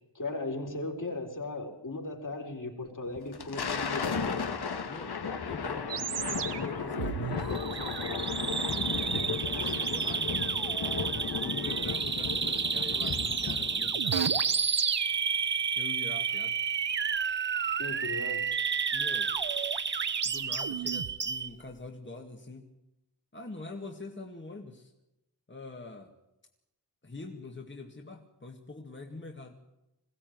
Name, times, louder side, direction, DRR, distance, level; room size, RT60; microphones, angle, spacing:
voice 1, 0.1-4.4 17.8-18.5, left 2 dB, 50° left, 2 dB, 4.4 m, -37 dB
Thunder, 3.2-13.9, left 5 dB, 65° left, 1.9 m, -35 dB
voice 2, 4.9-5.2 5.5-8.3 8.7-10.4 11.4-14.3 15.8-16.6 18.9-19.3 20.2-22.7 23.3-24.9 25.5-26.1 27.0-29.6, left 3 dB, 25° left, 2 dB, 2.1 m, -44 dB
sound 1, 5.9-21.2, right 9 dB, 85° right, 1.1 m, -35 dB
Bird vocalization bird call bird song, 7.5-21.5, right 5 dB, 25° right, 0.7 m, -32 dB
22.0 x 16.5 x 9.5 m, 0.92 s
wide cardioid pair, 80°, 41 cm